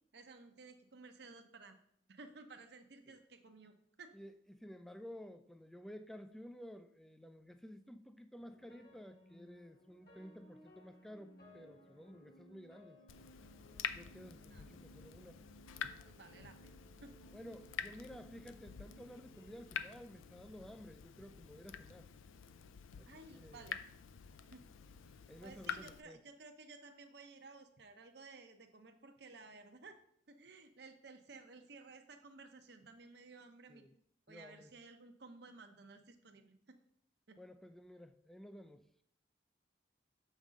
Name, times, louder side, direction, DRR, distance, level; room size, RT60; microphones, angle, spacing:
voice 1, 0.1-1.8 2.1-4.1 14.5-14.7 16.0-17.1 23.1-23.8 24.5-24.6 25.4-30.0 30.3-33.8 34.3-36.6 37.3-37.4, right 3 dB, 55° right, 6 dB, 0.7 m, -56 dB
voice 2, 4.1-13.0 13.9-15.4 17.3-22.1 23.0-23.6 25.3-26.2 33.7-33.9 34.3-34.7 37.4-38.9, equal, ahead, 9 dB, 0.3 m, -53 dB
sound 1, 8.4-20.7, right 1 dB, 50° left, 1.2 m, -62 dB
Water tap faucet / Drip, 13.1-26.0, left 8 dB, 90° left, 0.4 m, -48 dB
7.3 x 5.4 x 3.7 m, 0.68 s
head